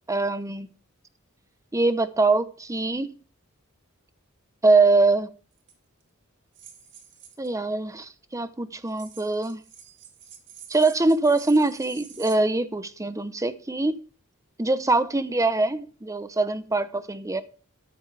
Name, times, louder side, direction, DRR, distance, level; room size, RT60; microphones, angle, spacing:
voice 1, 0.1-0.7 1.7-3.2 4.6-5.3 7.4-9.6 10.7-14.0 14.6-17.4, right 3 dB, 15° right, 0.8 m, -23 dB
sound 1, 5.6-5.7 6.5-7.5 8.9-12.4, right 8 dB, 60° right, 2.2 m, -47 dB
13.5 x 9.2 x 3.4 m
head